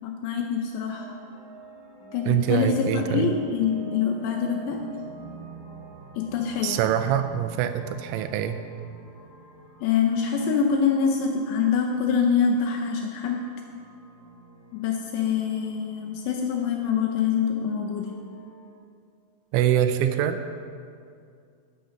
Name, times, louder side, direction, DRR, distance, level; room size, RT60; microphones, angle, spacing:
voice 1, 0.0-1.1 2.1-4.8 6.2-6.8 9.8-13.5 14.7-18.1, left 6 dB, 80° left, 2 dB, 2.6 m, -25 dB
sound 1, 0.9-18.7, right 2 dB, 35° left, 1.4 m, -47 dB
voice 2, 2.3-3.3 6.6-8.6 19.5-20.4, right 10 dB, 85° right, 8 dB, 3.1 m, -24 dB
13.0 x 8.7 x 5.2 m, 2.3 s
omnidirectional pair, 5.6 m